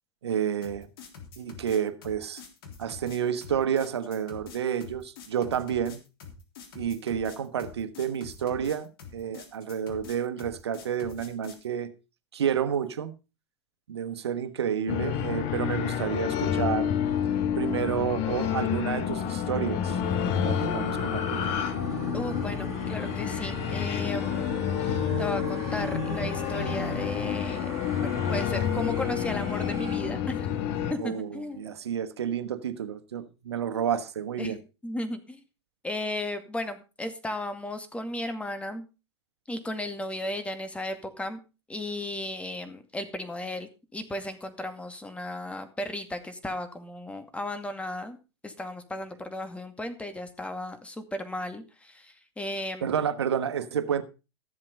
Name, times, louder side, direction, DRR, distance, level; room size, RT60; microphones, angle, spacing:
voice 1, 0.2-0.9 1.4-2.4 2.8-6.0 6.7-11.9 12.3-13.1 13.9-16.9 17.6-20.0 20.4-21.4 31.0-34.6 52.8-54.0, right 8 dB, 75° right, 1.3 m, -30 dB
sound 1, 0.6-11.6, left 6 dB, 65° left, 3.4 m, -45 dB
sound 2, 14.9-30.9, left 8 dB, 45° left, 1.7 m, -29 dB
sound 3, 19.9-30.0, right 6 dB, 20° right, 4.4 m, -42 dB
voice 2, 22.1-30.5 30.9-31.7 34.4-34.6 34.8-35.4 35.8-38.8 39.5-41.4 41.7-48.2 48.4-53.0, left 1 dB, 10° left, 2.2 m, -35 dB
14.0 x 7.6 x 5.2 m
hypercardioid pair, 95°, 14 cm